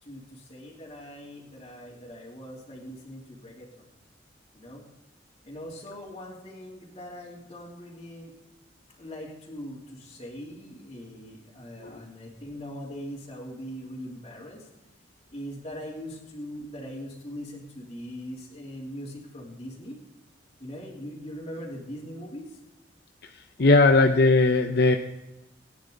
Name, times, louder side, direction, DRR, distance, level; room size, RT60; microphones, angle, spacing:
voice 1, 0.0-3.9 4.5-4.9 5.4-8.3 8.9-14.7 15.3-20.0 20.6-22.6 23.6-23.9, equal, 30° left, -8 dB, 3.2 m, -41 dB
voice 2, 23.2-25.0, left 3 dB, 65° left, 5 dB, 0.8 m, -19 dB
27.0 x 10.0 x 4.0 m, 0.99 s
head